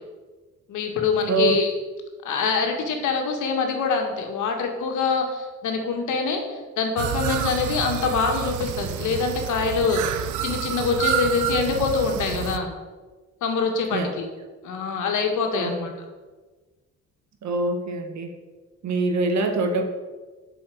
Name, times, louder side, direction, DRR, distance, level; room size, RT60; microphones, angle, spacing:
voice 1, 0.7-1.7 2.2-12.7 13.4-14.3 14.6-15.9, left 5 dB, 80° left, 3 dB, 2.1 m, -25 dB
sound 1, 7.0-12.6, right 11 dB, 85° right, 0.8 m, -29 dB
voice 2, 17.4-18.3 18.8-19.9, right 3 dB, 65° right, 5 dB, 1.9 m, -24 dB
8.8 x 6.3 x 7.9 m, 1.3 s
cardioid pair, 90°, 30 cm